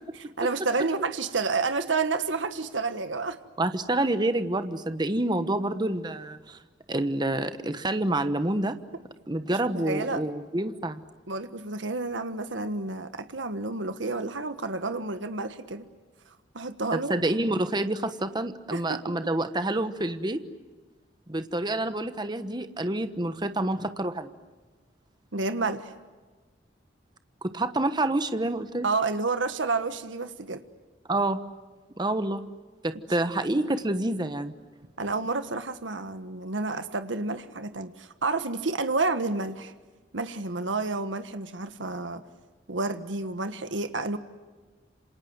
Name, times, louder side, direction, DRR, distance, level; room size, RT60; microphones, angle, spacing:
voice 1, 0.4-3.4 9.5-10.2 11.3-15.8 16.5-17.2 18.7-19.2 25.3-25.9 28.8-30.6 35.0-39.7 40.1-42.2 42.7-44.2, right 3 dB, 85° right, 9 dB, 1.5 m, -30 dB
voice 2, 3.6-6.6 6.9-8.8 9.3-11.0 16.9-20.4 21.3-24.3 27.4-28.9 31.1-31.4 32.0-32.4 32.8-34.5, right 1 dB, 25° right, 10 dB, 1.2 m, -28 dB
28.0 x 26.5 x 8.0 m, 1.3 s
head